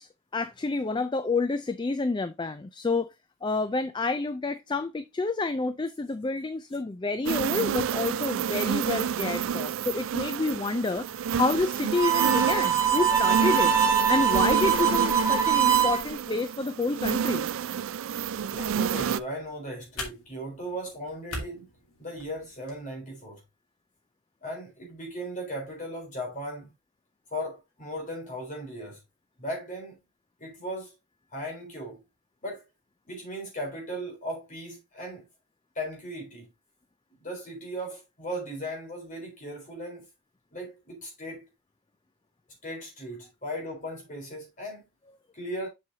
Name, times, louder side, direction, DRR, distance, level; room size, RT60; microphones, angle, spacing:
voice 1, 0.0-3.1 3.4-13.7 14.1-17.5, left 3 dB, 20° left, 0.3 m, -29 dB
sound 1, 7.3-19.2, right 8 dB, 60° right, 0.3 m, -29 dB
Harmonica, 11.9-16.0, right 8 dB, 15° right, 0.9 m, -23 dB
voice 2, 18.5-21.7 22.0-23.4 24.4-26.7 27.3-29.0 29.4-30.0 30.4-30.9 31.3-32.0 32.4-32.6 33.1-35.3 35.8-36.5 37.2-40.1 40.5-41.4 42.6-44.8 45.3-45.7, equal, 35° left, 3.9 m, -37 dB
sound 2, 18.8-22.8, left 2 dB, 75° left, 2.7 m, -43 dB
7.4 x 6.3 x 2.7 m
head